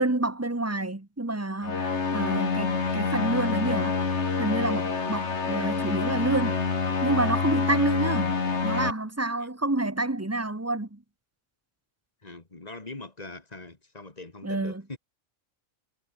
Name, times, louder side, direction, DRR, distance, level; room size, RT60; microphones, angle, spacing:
voice 1, 0.0-4.0 4.4-6.6 7.0-8.4 8.6-11.0 14.4-14.8, right 2 dB, 10° right, 1.4 m, -28 dB
sound 1, 1.6-8.9, left 4 dB, 55° left, 2.3 m, -27 dB
voice 2, 12.2-15.0, left 2 dB, 30° left, 2.5 m, -42 dB
omnidirectional pair, 1.4 m